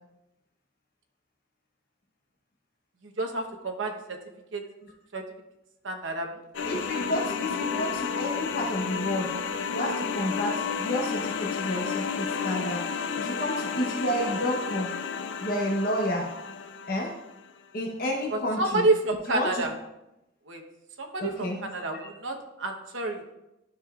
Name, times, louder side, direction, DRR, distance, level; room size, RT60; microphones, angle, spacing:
voice 1, 3.0-3.9 4.5-4.6 5.1-5.2 5.8-6.3 18.6-19.7 20.5-20.6 21.0-23.2, right 2 dB, 80° right, 3 dB, 1.0 m, -28 dB
sound 1, 6.5-17.3, left 6 dB, 70° left, 0.5 m, -31 dB
voice 2, 6.7-9.3 9.7-12.8 13.2-14.9 15.4-16.3 16.9-17.1 17.7-18.9 19.3-19.7 21.2-21.6 21.9-22.1, left 1 dB, 50° left, 0 dB, 0.9 m, -30 dB
12.0 x 5.1 x 2.4 m, 0.91 s
head